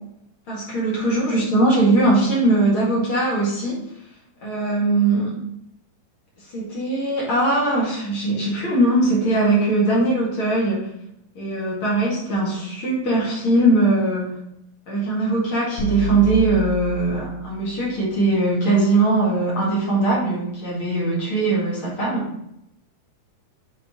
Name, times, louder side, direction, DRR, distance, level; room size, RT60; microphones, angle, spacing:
voice 1, 0.5-3.8 4.4-5.4 6.5-10.9 11.3-14.4 14.9-22.3, right 2 dB, 45° left, -5 dB, 2.6 m, -20 dB
sound 1, 15.8-17.9, right 3 dB, 70° left, 2.4 m, -28 dB
8.2 x 4.3 x 3.1 m, 0.79 s
omnidirectional pair, 3.7 m